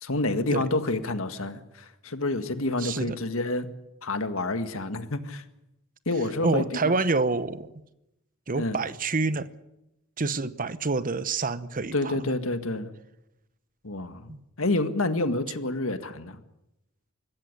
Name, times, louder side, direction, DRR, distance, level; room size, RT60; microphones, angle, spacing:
voice 1, 0.0-3.7 4.0-5.4 6.0-6.9 8.6-8.8 11.9-12.9 13.8-14.3 14.6-16.4, left 2 dB, 70° left, 1.8 m, -28 dB
voice 2, 2.8-3.2 6.4-7.7 8.5-9.5 10.2-12.2 14.3-14.4, right 3 dB, 40° right, 1.0 m, -27 dB
25.0 x 14.5 x 9.8 m
head